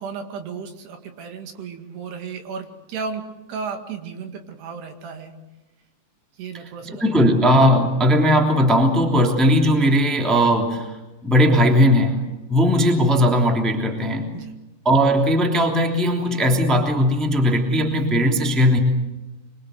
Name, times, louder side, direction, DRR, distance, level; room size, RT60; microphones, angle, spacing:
voice 1, 0.0-3.2 3.5-5.3 6.4-7.0 14.3-14.5, right 5 dB, 70° right, 5 dB, 4.0 m, -34 dB
voice 2, 7.0-10.9 11.2-12.2 12.5-14.3 14.8-18.8, equal, ahead, 3 dB, 2.1 m, -18 dB
25.0 x 24.5 x 7.9 m, 1.0 s
omnidirectional pair, 5.1 m